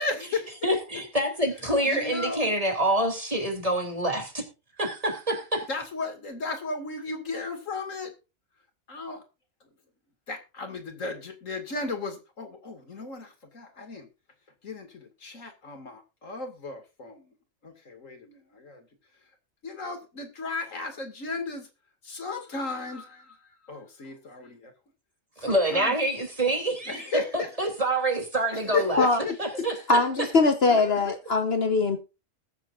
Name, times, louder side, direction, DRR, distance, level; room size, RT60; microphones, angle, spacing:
voice 1, 0.0-0.7 1.9-2.5 5.7-8.1 8.9-9.2 10.3-14.1 14.6-17.3 17.6-18.9 19.6-21.7 22.0-24.7 25.4-26.0 26.9-27.5 28.5-29.6 30.7-31.2, left 3 dB, 90° left, 2.7 m, -34 dB
voice 2, 0.6-4.4 4.8-5.7 25.4-27.1 27.3-29.1 29.4-29.8, right 1 dB, 25° right, 3.3 m, -26 dB
voice 3, 29.9-32.0, left 3 dB, 55° left, 1.4 m, -22 dB
21.0 x 7.4 x 2.6 m
omnidirectional pair, 1.3 m